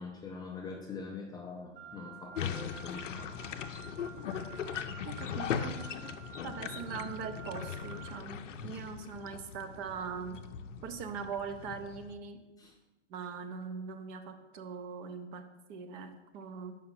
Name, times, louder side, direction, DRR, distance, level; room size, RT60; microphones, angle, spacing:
voice 1, 0.0-3.4 12.6-12.8, left 4 dB, 10° left, -1 dB, 0.4 m, -43 dB
Wind instrument woodwind instrument, 1.7-8.2, right 9 dB, 65° right, 1.4 m, -50 dB
sound 1, 2.4-12.1, left 8 dB, 85° left, 0.5 m, -40 dB
voice 2, 5.0-5.8 6.4-10.4 10.8-12.4 13.1-16.8, right 6 dB, 35° right, 8 dB, 0.6 m, -41 dB
5.0 x 4.3 x 5.7 m, 1.1 s
hypercardioid pair, 110°, 36 cm